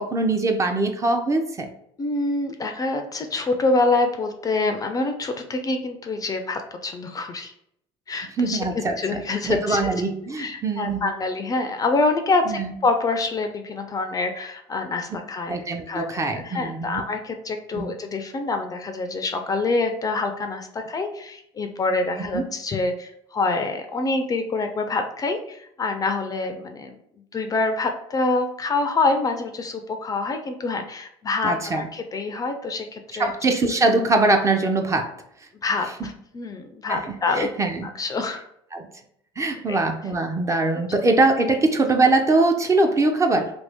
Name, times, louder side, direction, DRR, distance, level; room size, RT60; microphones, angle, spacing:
voice 1, 0.0-1.7 8.4-11.1 12.5-12.7 15.5-17.0 17.7-17.9 22.3-22.4 31.4-31.9 33.2-35.1 36.0-36.1 36.9-37.9 38.7-38.9 39.4-43.5, right 2 dB, 20° right, 6 dB, 0.5 m, -22 dB
voice 2, 2.0-7.5 8.1-8.6 9.0-9.8 10.4-15.6 15.9-16.1 16.4-26.9 27.3-33.3 35.6-37.5 37.8-38.5 39.7-39.8, left 3 dB, 25° left, 6 dB, 0.4 m, -26 dB
2.8 x 2.6 x 3.4 m, 0.73 s
hypercardioid pair, 80°, 13 cm